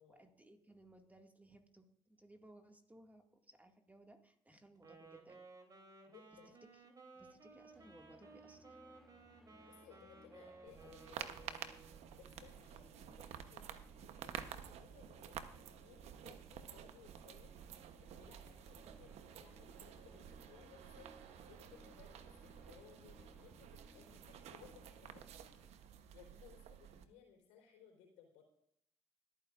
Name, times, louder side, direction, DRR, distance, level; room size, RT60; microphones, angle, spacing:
voice 1, 0.0-5.5 6.7-6.8 7.1-8.8, right 1 dB, 15° right, 4 dB, 2.1 m, -62 dB
Wind instrument woodwind instrument, 4.8-12.0, right 4 dB, 35° right, 3.2 m, -59 dB
voice 2, 6.1-6.5 9.6-11.6 12.1-21.1 21.4-25.3 26.1-28.4, left 8 dB, 85° left, 1 dB, 4.1 m, -63 dB
sound 1, 7.7-25.7, left 1 dB, ahead, 2.0 m, -65 dB
sound 2, 10.7-27.1, right 9 dB, 70° right, 1.0 m, -52 dB
26.0 x 9.2 x 2.5 m, 0.72 s
supercardioid pair, 65°, 11 cm